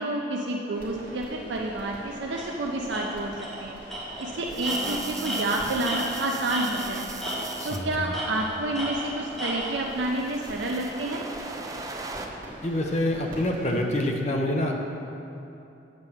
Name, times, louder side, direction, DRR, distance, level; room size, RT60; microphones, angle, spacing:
voice 1, 0.0-3.3 3.6-7.2 7.6-11.2, right 2 dB, 75° right, 0 dB, 0.5 m, -29 dB
sound 1, 0.7-13.7, equal, 50° right, 1.9 m, -44 dB
Tools, 2.4-2.5 2.9-3.0 3.4-3.6 3.9-6.9 7.2-7.7 8.1-9.8, right 1 dB, ahead, 1.4 m, -33 dB
sound 2, 4.5-7.8 8.9-12.3, right 3 dB, 20° right, 0.4 m, -40 dB
voice 2, 7.6-8.2 12.6-14.7, left 1 dB, 40° left, 1 dB, 0.7 m, -27 dB
8.1 x 7.5 x 3.5 m, 2.9 s
head